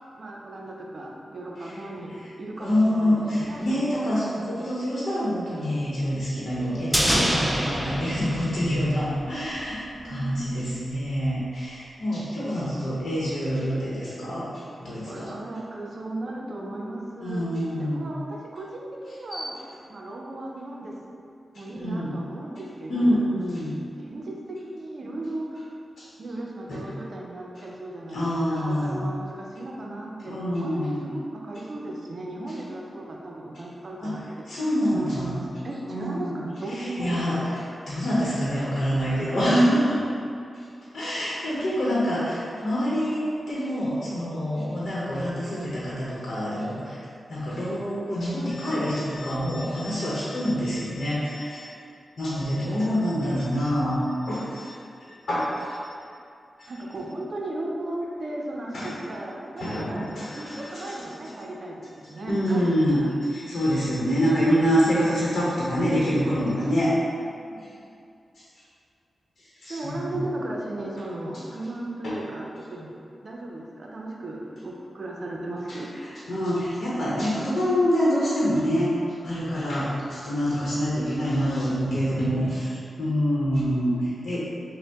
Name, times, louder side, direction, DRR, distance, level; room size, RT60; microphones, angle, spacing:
voice 1, 0.1-3.9 9.8-10.4 15.1-17.5 17.8-19.5 19.9-21.0 21.5-23.2 24.0-25.8 26.2-34.2 34.5-34.7 34.9-37.7 39.0-39.5 41.5-41.6 56.7-60.1 60.3-63.1 67.5-67.7 69.7-73.0 73.2-75.9, right 1 dB, 55° right, -1 dB, 0.6 m, -36 dB
voice 2, 2.6-15.3 17.2-18.1 19.3-19.5 21.5-22.1 22.9-23.8 26.0-26.1 26.7-27.0 28.1-29.1 30.3-31.0 34.0-35.3 35.9-36.4 36.7-37.4 37.9-40.0 40.9-51.7 52.2-54.7 55.1-55.8 56.6-56.7 58.7-58.9 59.6-61.1 62.3-66.9 69.6-70.2 72.0-72.1 75.7-75.8 76.3-84.4, equal, 65° left, -8 dB, 0.9 m, -26 dB
sound 1, 6.9-9.3 9.6-9.7, equal, 5° right, 0.4 m, -25 dB
5.1 x 2.2 x 3.5 m, 2.5 s
cardioid pair, 75°, 0 cm